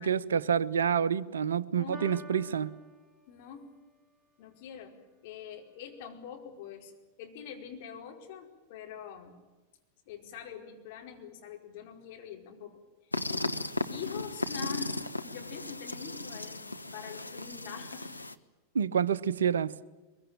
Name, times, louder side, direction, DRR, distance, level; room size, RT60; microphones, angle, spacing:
voice 1, 0.0-2.7 18.7-19.7, right 7 dB, 65° right, 0.7 m, -28 dB
voice 2, 1.7-2.7 3.3-3.6 4.4-9.4 10.1-13.2 13.9-18.2 18.8-18.9, left 7 dB, 50° left, 4.8 m, -45 dB
Piano, 1.9-3.9, left 1 dB, 15° right, 2.8 m, -50 dB
sound 1, 13.1-18.3, left 2 dB, 85° left, 1.0 m, -36 dB
22.5 x 22.5 x 8.9 m
figure-of-eight pair, 90°, 0 cm